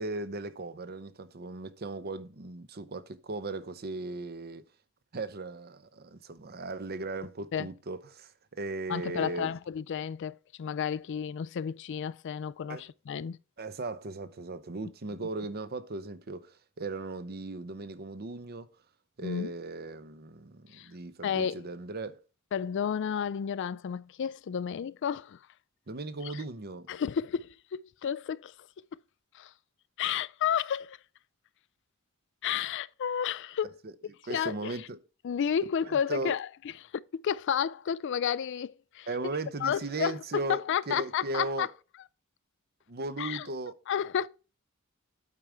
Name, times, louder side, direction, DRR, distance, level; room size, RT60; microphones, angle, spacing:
voice 1, 0.0-4.6 5.1-9.5 12.7-12.8 13.6-18.7 19.2-22.2 25.9-26.9 33.8-33.9 34.2-35.0 35.9-36.4 39.1-40.6 40.9-41.7 42.9-43.7, right 2 dB, 45° right, 0.8 m, -37 dB
voice 2, 8.9-13.4 19.2-19.5 20.7-20.9 21.2-21.6 22.5-25.4 26.2-26.4 26.9-28.5 29.3-29.5 30.0-31.0 32.4-33.7 34.3-34.8 35.2-36.5 36.8-39.1 39.6-41.7 43.2-43.5 43.9-44.3, left 8 dB, 60° left, 0.4 m, -31 dB
8.5 x 5.0 x 4.4 m
head